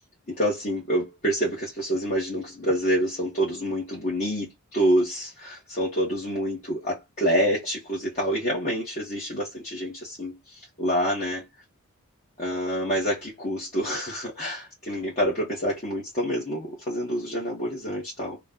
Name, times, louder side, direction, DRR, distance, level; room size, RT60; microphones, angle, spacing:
voice 1, 0.3-11.4 12.4-18.4, equal, 35° left, 1.2 m, -27 dB
2.9 x 2.3 x 3.7 m
head